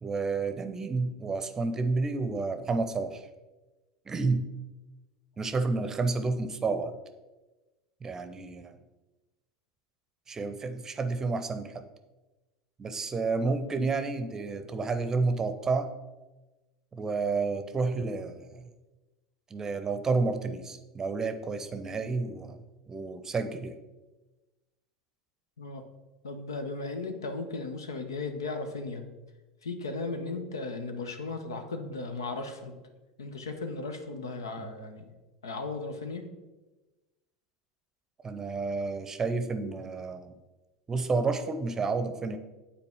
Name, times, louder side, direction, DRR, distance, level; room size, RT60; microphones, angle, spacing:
voice 1, 0.0-3.3 4.1-4.5 5.4-6.9 8.0-8.8 10.3-11.8 12.8-15.9 16.9-18.7 19.5-22.6 22.9-23.8 34.6-34.7 38.2-40.3 40.9-42.4, right 3 dB, 25° right, 9 dB, 0.7 m, -30 dB
voice 2, 26.2-29.0 29.6-32.8 33.2-35.1 35.4-36.2, left 3 dB, 80° left, 6 dB, 0.8 m, -36 dB
9.1 x 4.2 x 3.5 m, 1.1 s
figure-of-eight pair, 80°, 2 cm